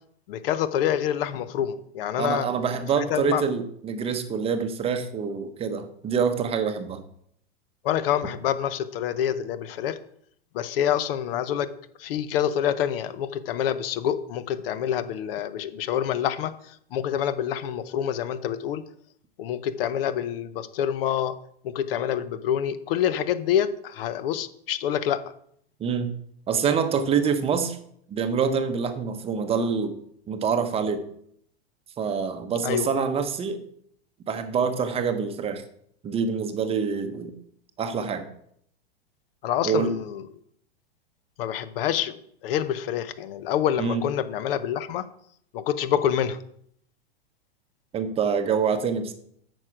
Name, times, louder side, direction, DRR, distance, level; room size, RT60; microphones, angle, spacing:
voice 1, 0.3-2.5 3.0-3.4 7.8-10.0 10.5-11.7 12.0-18.8 19.4-21.3 21.6-25.2 32.6-32.9 39.4-40.2 41.4-42.2 42.4-45.0 45.5-46.4, left 10 dB, 60° left, 14 dB, 0.9 m, -27 dB
voice 2, 2.2-7.0 25.8-26.1 26.5-27.8 28.1-30.0 30.3-31.1 32.0-33.6 34.3-35.6 36.0-37.3 37.8-38.2 39.6-40.0 43.8-44.0 47.9-49.1, right 6 dB, 20° right, 8 dB, 0.8 m, -26 dB
9.0 x 6.3 x 5.0 m, 0.68 s
hypercardioid pair, 135°, 33 cm